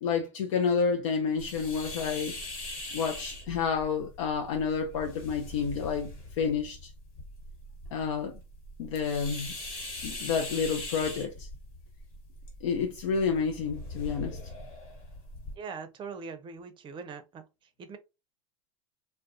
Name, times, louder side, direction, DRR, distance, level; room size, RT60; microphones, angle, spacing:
voice 1, 0.0-2.4 2.9-6.1 6.4-6.9 7.9-8.3 8.8-9.5 10.0-11.5 12.6-14.4, left 6 dB, 80° left, 0.5 m, -29 dB
sound 1, 1.4-15.5, left 2 dB, 60° left, 1.2 m, -42 dB
voice 2, 15.6-17.4 17.8-18.0, right 5 dB, 30° right, 0.5 m, -41 dB
2.3 x 2.1 x 2.6 m
hypercardioid pair, 100°, 17 cm